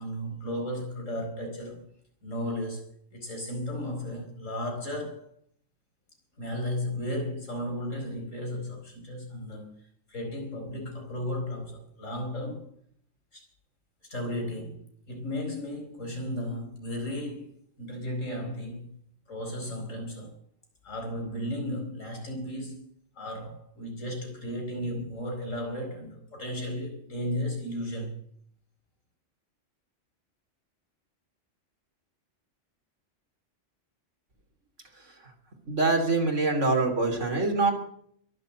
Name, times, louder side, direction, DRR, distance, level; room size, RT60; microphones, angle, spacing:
voice 1, 0.0-1.8 2.2-5.3 6.4-9.8 10.1-12.7 13.3-13.4 14.1-18.9 19.3-20.4 20.8-22.9 23.2-28.2, left 1 dB, 80° left, 5.1 m, -34 dB
voice 2, 35.7-37.7, right 3 dB, 70° right, 3.5 m, -24 dB
22.5 x 7.6 x 7.7 m
omnidirectional pair, 1.3 m